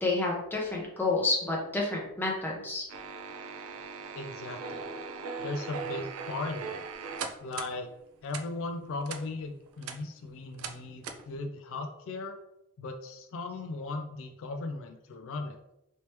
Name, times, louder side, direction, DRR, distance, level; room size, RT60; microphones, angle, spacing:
voice 1, 0.0-2.8, left 2 dB, 10° left, -3 dB, 0.8 m, -29 dB
sound 1, 2.9-7.7 8.3-8.4 9.1-9.2 9.7-10.0 10.6-10.8 11.0-11.2, right 5 dB, 75° right, 0.4 m, -39 dB
voice 2, 4.1-4.8 5.4-6.8 7.4-7.9 8.2-12.4 12.8-15.6, left 3 dB, 60° left, 5 dB, 0.3 m, -37 dB
3.2 x 3.0 x 2.9 m, 0.87 s
head